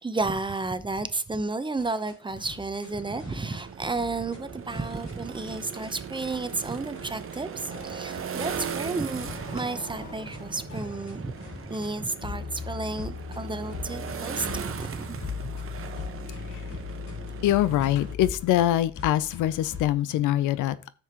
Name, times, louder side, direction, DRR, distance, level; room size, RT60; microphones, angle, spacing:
voice 1, 0.0-11.3 11.7-15.2, right 3 dB, 15° right, 0.8 m, -32 dB
sound 1, 1.8-2.9 3.2-3.7 3.9-4.4 4.7-5.9 6.2-6.6 6.9-7.4 7.7-8.9 9.2-9.6 9.9-10.4 10.7-11.9 12.2-19.9, left 6 dB, 65° left, 3.0 m, -40 dB
sound 2, 2.9-18.1, right 7 dB, 45° right, 1.0 m, -39 dB
Motorcycle, 8.1-16.1, left 1 dB, 35° left, 4.4 m, -46 dB
voice 2, 17.4-20.9, left 13 dB, 90° left, 0.6 m, -24 dB
10.0 x 7.0 x 2.9 m
cardioid pair, 90°, 30 cm